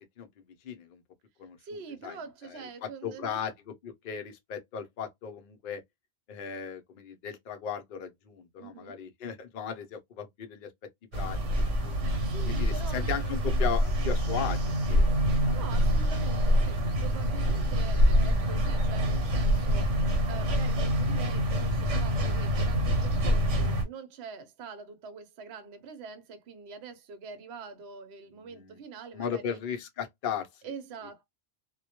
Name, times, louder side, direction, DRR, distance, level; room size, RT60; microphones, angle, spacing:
voice 1, 0.2-1.0 1.4-1.6 2.0-5.8 6.3-10.7 11.1-12.0 12.4-15.1 15.4-15.6 28.3-28.8 29.1-30.5, left 7 dB, 55° left, 0.6 m, -37 dB
voice 2, 1.6-3.4 8.6-8.9 12.2-13.6 15.5-29.6 30.6-31.2, right 5 dB, 65° right, 0.8 m, -44 dB
sound 1, 11.1-23.8, equal, 90° right, 1.1 m, -26 dB
2.1 x 2.1 x 2.8 m
omnidirectional pair, 1.2 m